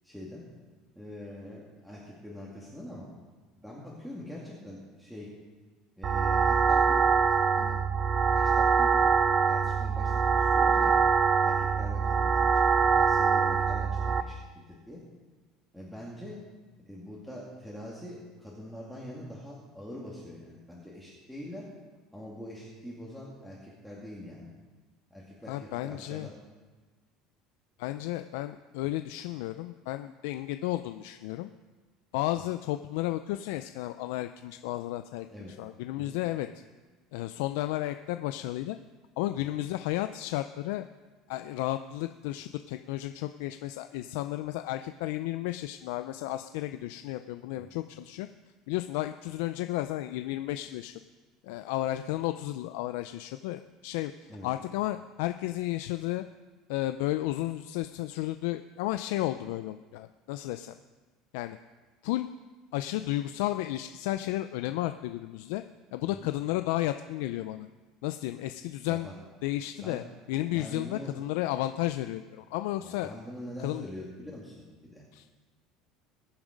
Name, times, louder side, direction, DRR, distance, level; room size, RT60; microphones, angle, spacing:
voice 1, 0.0-0.4 1.0-3.1 3.6-5.3 6.0-7.0 7.5-7.7 8.3-8.9 9.2-11.0 11.4-12.5 12.9-14.4 14.7-15.0 15.7-16.4 16.8-21.6 22.1-24.5 25.1-26.3 32.4-32.5 35.3-35.5 36.0-36.2 47.6-47.7 54.3-54.5 66.0-66.3 68.9-69.1 69.8-70.0 70.5-71.1 72.8-75.0, left 1 dB, ahead, -6 dB, 2.3 m, -44 dB
sound 1, 6.0-14.2, right 6 dB, 30° right, 0.8 m, -24 dB
voice 2, 25.5-26.3 27.8-31.5 32.1-35.3 35.6-36.5 37.1-38.8 39.2-40.8 41.3-48.3 48.7-50.9 51.4-54.1 54.4-56.2 56.7-60.8 61.3-61.6 62.0-62.3 62.7-65.6 65.9-67.7 68.0-69.1 69.4-73.1 73.6-73.9 75.1-75.3, left 15 dB, 85° left, 9 dB, 0.4 m, -33 dB
21.5 x 7.3 x 5.2 m, 1.3 s
cardioid pair, 135°, 0 cm